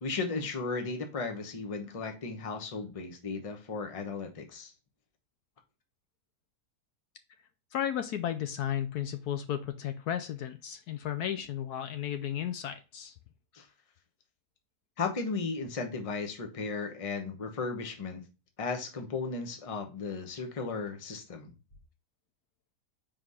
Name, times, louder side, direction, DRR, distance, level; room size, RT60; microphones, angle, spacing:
voice 1, 0.0-4.7 13.5-13.7 15.0-18.2 18.6-21.5, left 4 dB, 25° left, 5 dB, 0.8 m, -35 dB
voice 2, 7.7-13.1, left 10 dB, 70° left, 9 dB, 1.1 m, -34 dB
4.8 x 3.7 x 5.4 m, 0.30 s
omnidirectional pair, 1.8 m